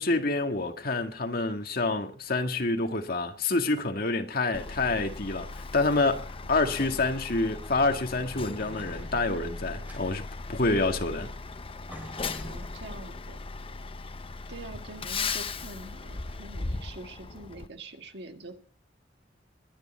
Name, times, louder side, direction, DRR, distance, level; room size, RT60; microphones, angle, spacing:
voice 1, 0.0-11.3, left 3 dB, 55° left, 1.8 m, -28 dB
Truck, 4.5-17.7, left 4 dB, 30° left, 0.7 m, -38 dB
sound 1, 5.2-6.1 6.5-7.1 7.5-8.0 8.3-10.5 11.4-11.5 11.9-13.1, equal, 10° right, 6.7 m, -48 dB
voice 2, 12.3-13.4 14.5-18.6, right 2 dB, 65° right, 1.8 m, -45 dB
22.0 x 9.8 x 4.3 m
head